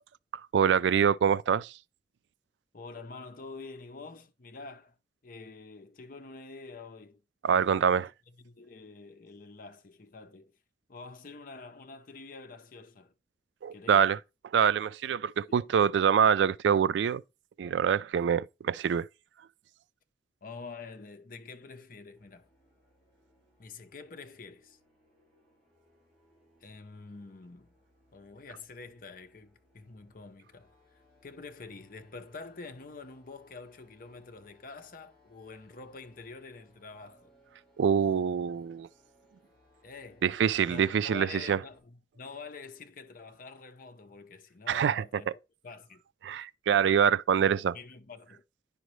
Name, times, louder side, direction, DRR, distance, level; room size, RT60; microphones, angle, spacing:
voice 1, 0.5-1.7 7.4-8.1 13.6-14.2 14.5-17.2 17.6-19.1 37.8-38.9 40.2-41.6 44.7-45.2 46.2-47.8, right 7 dB, 80° right, 0.3 m, -25 dB
voice 2, 2.7-5.0 5.2-7.2 7.5-8.1 8.4-10.5 10.9-13.1 13.7-14.1 15.5-15.6 20.4-22.5 23.6-24.8 26.6-27.7 28.1-30.7 31.2-37.3 39.8-40.3 40.6-46.0 47.7-48.4, left 4 dB, 50° left, 0.7 m, -47 dB
sound 1, 22.1-41.8, left 1 dB, ahead, 4.7 m, -66 dB
10.0 x 5.1 x 3.1 m
head